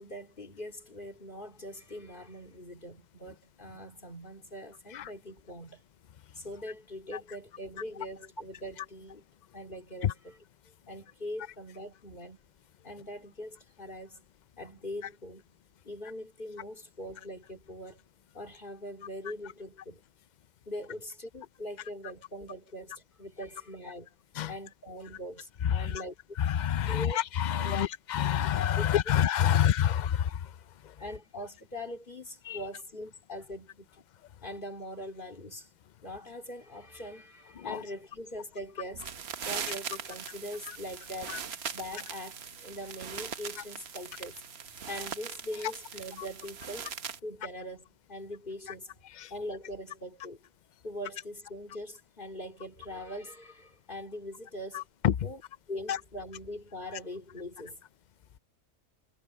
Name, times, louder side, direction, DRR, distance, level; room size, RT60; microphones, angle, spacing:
voice 1, 0.0-5.8 6.3-9.2 9.5-10.4 10.9-12.4 12.8-14.2 14.6-15.4 15.8-18.0 18.3-20.0 20.6-24.1 24.5-26.1 26.9-27.2 27.5-27.9 28.8-28.9 29.5-29.6 31.0-33.9 34.4-35.7 36.0-39.1 39.4-41.5 41.7-44.4 44.9-46.9 47.2-49.0 49.3-50.4 50.8-54.8 55.2-55.4 55.7-57.8, left 1 dB, 40° left, 3.4 m, -42 dB
voice 2, 25.6-26.0 26.4-30.5 30.8-30.9 32.4-32.6 37.6-37.8 41.3-41.4 48.7-48.8 49.1-49.3 54.7-55.3 55.9-56.0, left 10 dB, 55° left, 0.5 m, -28 dB
sound 1, 38.9-47.2, right 7 dB, 55° right, 1.2 m, -40 dB
omnidirectional pair, 1.3 m